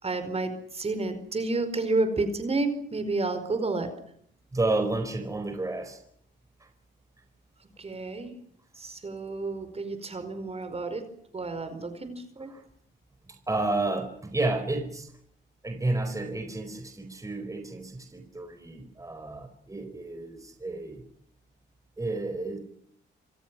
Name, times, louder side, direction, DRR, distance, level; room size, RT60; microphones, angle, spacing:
voice 1, 0.0-3.9 7.8-8.3 8.8-11.1 11.3-12.5, right 3 dB, 30° right, 4.7 m, -30 dB
voice 2, 4.5-6.0 6.6-6.7 12.5-12.6 13.3-15.1 15.6-21.1 22.0-22.6, right 2 dB, 15° right, 4.6 m, -31 dB
28.0 x 26.0 x 6.2 m
cardioid pair, 90°, 20 cm